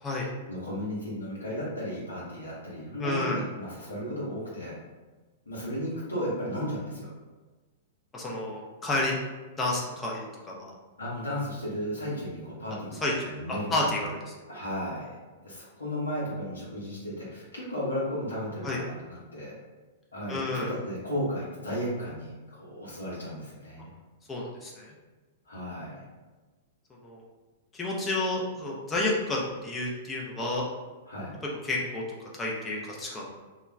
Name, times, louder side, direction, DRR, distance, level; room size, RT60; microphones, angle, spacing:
voice 1, 0.5-4.7 5.5-7.1 11.0-14.1 14.5-15.1 15.4-19.6 20.1-23.9 25.4-26.0 31.1-31.3, equal, 85° left, -7 dB, 0.8 m, -34 dB
voice 2, 3.0-3.4 8.1-9.1 9.6-10.7 13.0-14.3 18.6-18.8 20.3-20.7 24.3-24.9 27.0-27.2 27.7-30.6 31.6-32.0 32.3-33.3, left 2 dB, 15° left, -3 dB, 0.6 m, -30 dB
2.3 x 2.2 x 3.1 m, 1.3 s
figure-of-eight pair, 105°, 0 cm